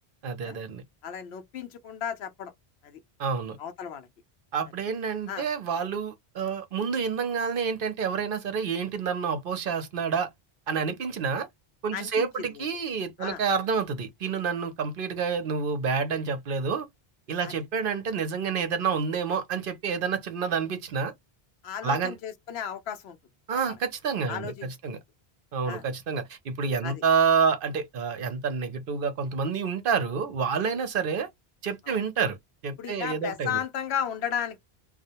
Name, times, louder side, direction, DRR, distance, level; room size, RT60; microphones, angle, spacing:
voice 1, 0.2-0.8 3.2-3.6 4.5-10.3 10.7-11.5 11.8-16.9 17.3-21.1 21.8-22.1 23.5-25.0 25.5-31.3 31.6-32.4 32.6-33.6, right 6 dB, 60° right, 0.8 m, -28 dB
voice 2, 1.0-2.5 2.8-3.0 3.6-4.1 5.3-5.5 11.9-12.6 13.2-13.4 17.4-17.5 21.6-23.2 23.5-23.8 24.3-24.9 25.6-25.9 26.8-27.0 31.8-32.0 32.8-34.6, left 8 dB, 85° left, 0.9 m, -34 dB
2.3 x 2.1 x 2.7 m
omnidirectional pair, 1.0 m